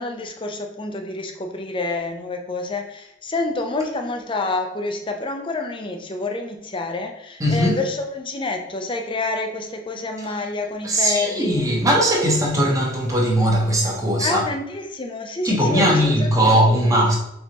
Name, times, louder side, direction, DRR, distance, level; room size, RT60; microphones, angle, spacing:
voice 1, 0.0-11.6 14.2-16.9, left 2 dB, 25° left, 0.5 m, -28 dB
voice 2, 7.4-7.8 10.8-14.4 15.4-17.2, equal, 15° right, 0.9 m, -19 dB
4.4 x 3.9 x 2.9 m
head